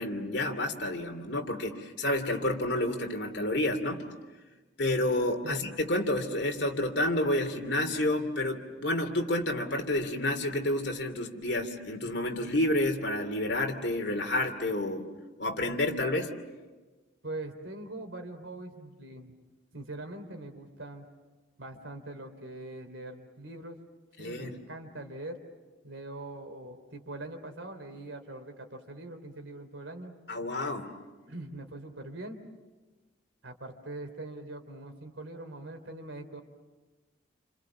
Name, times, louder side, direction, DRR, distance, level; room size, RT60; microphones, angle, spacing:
voice 1, 0.0-4.0 4.8-15.1 15.4-16.3 24.2-24.5 30.3-30.8, left 1 dB, 60° left, 5 dB, 2.8 m, -29 dB
voice 2, 17.2-19.4 19.7-21.1 21.6-23.8 24.2-25.4 25.8-30.1 31.3-32.4 33.4-36.4, right 2 dB, 80° right, 6 dB, 3.4 m, -42 dB
29.0 x 27.5 x 7.3 m, 1.3 s
head